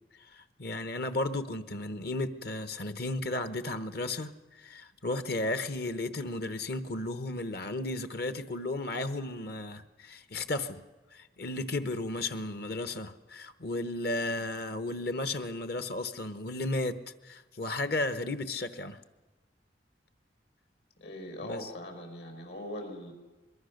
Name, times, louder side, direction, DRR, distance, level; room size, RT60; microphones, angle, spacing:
voice 1, 0.3-10.8 11.1-19.0 21.4-21.7, left 2 dB, 60° left, 1.1 m, -34 dB
voice 2, 21.0-23.1, left 1 dB, 80° left, 5.9 m, -41 dB
25.0 x 22.0 x 6.6 m
head